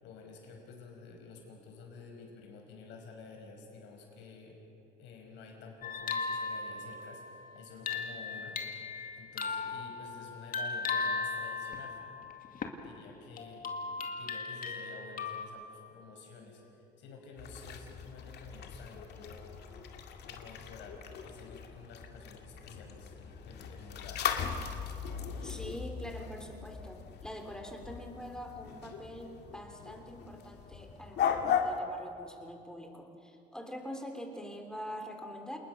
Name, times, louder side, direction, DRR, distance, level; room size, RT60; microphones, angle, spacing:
voice 1, 0.0-4.6 5.0-8.8 9.1-12.0 12.7-13.7 14.1-19.6 20.2-24.3 25.1-25.8, left 4 dB, 80° left, 1 dB, 5.6 m, -51 dB
sound 1, 5.8-12.9 13.4-15.5, left 4 dB, 50° left, 2.3 m, -37 dB
sound 2, 17.4-31.8, left 7 dB, 65° left, 2.2 m, -38 dB
voice 2, 25.4-35.6, equal, 5° left, 3 dB, 3.4 m, -44 dB
28.0 x 20.0 x 6.5 m, 2.8 s
cardioid pair, 95°, 19 cm